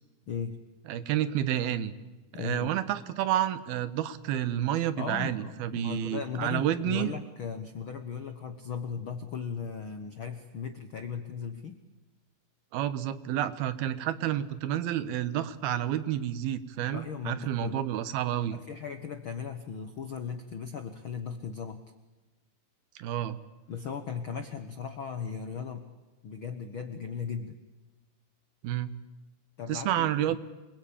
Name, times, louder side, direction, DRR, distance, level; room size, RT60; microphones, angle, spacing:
voice 1, 0.3-0.6 2.3-2.7 5.0-11.8 16.9-17.8 18.5-21.8 23.7-25.9 26.2-27.6 29.6-30.4, left 6 dB, 70° left, 8 dB, 1.2 m, -37 dB
voice 2, 0.9-1.9 2.3-7.1 12.7-18.6 23.0-23.4 28.6-28.9 29.7-30.4, right 11 dB, 85° right, 13 dB, 3.1 m, -30 dB
27.0 x 22.0 x 8.8 m, 1.1 s
omnidirectional pair, 4.2 m